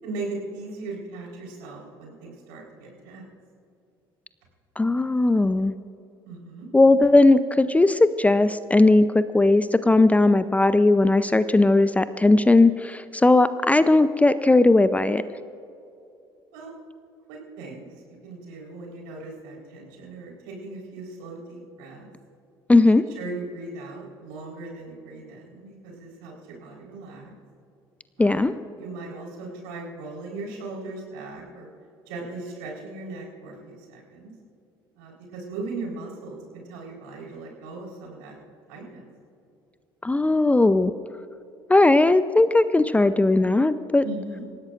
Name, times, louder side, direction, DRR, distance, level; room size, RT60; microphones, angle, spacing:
voice 1, 0.0-3.3 6.2-6.7 16.5-16.7 17.3-22.1 23.2-27.3 28.2-28.5 28.8-31.7 32.1-34.3 35.0-38.3 38.7-39.0 44.0-44.4, right 3 dB, 70° right, -1 dB, 4.1 m, -38 dB
voice 2, 4.8-5.7 6.7-15.2 22.7-23.0 28.2-28.5 40.0-40.9 41.7-44.0, left 2 dB, 10° left, 13 dB, 0.6 m, -18 dB
27.0 x 15.5 x 2.5 m, 2.6 s
figure-of-eight pair, 55°, 12 cm